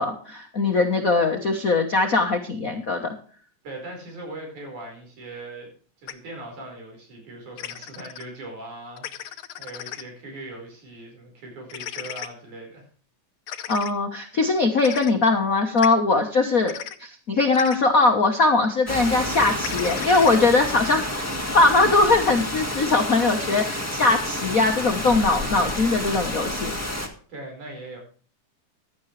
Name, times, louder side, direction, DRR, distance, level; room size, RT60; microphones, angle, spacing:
voice 1, 0.0-3.1 13.7-16.7 17.0-21.0 21.5-26.7, left 3 dB, 55° left, 4 dB, 0.9 m, -21 dB
voice 2, 3.6-5.7 6.0-12.9 19.4-19.8 27.0-28.0, right 2 dB, 75° right, 1 dB, 6.3 m, -40 dB
sound 1, 6.1-6.2 7.6-8.2 9.0-10.0 11.7-12.3 13.5-13.9 14.8-15.1 15.8-15.9 16.6-17.0 17.5-17.8 19.6-20.4, left 11 dB, 70° left, 1.3 m, -35 dB
Rain, 18.9-27.1, left 1 dB, 10° right, 1.1 m, -29 dB
15.5 x 11.5 x 3.3 m, 0.43 s
omnidirectional pair, 3.4 m